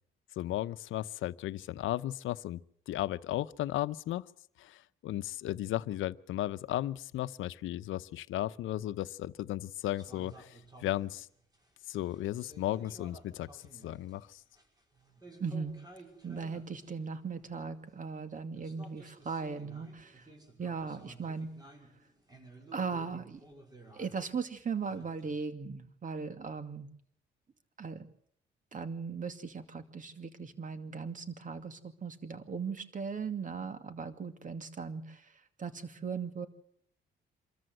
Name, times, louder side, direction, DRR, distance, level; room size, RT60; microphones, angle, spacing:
voice 1, 0.4-4.2 4.6-11.3 11.9-14.4, left 14 dB, 80° left, 0.8 m, -35 dB
sound 1, 10.0-18.0 18.5-25.3, right 2 dB, 20° right, 6.0 m, -55 dB
voice 2, 15.4-15.7 16.2-20.3 20.6-21.5 22.7-23.4 23.9-26.9 27.8-28.1 28.7-36.5, right 5 dB, 40° right, 2.5 m, -38 dB
26.0 x 14.0 x 7.8 m
cardioid pair, 90°, 20 cm